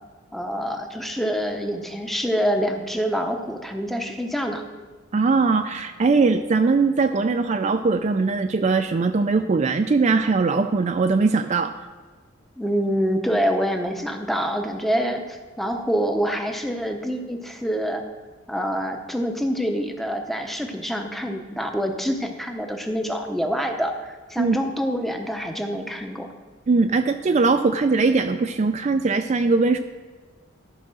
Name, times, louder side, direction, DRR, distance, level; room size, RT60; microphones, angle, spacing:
voice 1, 0.3-4.6 12.6-18.0 18.5-26.3, equal, ahead, 4 dB, 0.7 m, -26 dB
voice 2, 5.1-11.7 24.4-24.6 26.7-29.8, right 4 dB, 35° right, 7 dB, 0.4 m, -20 dB
12.5 x 4.8 x 6.2 m, 1.4 s
head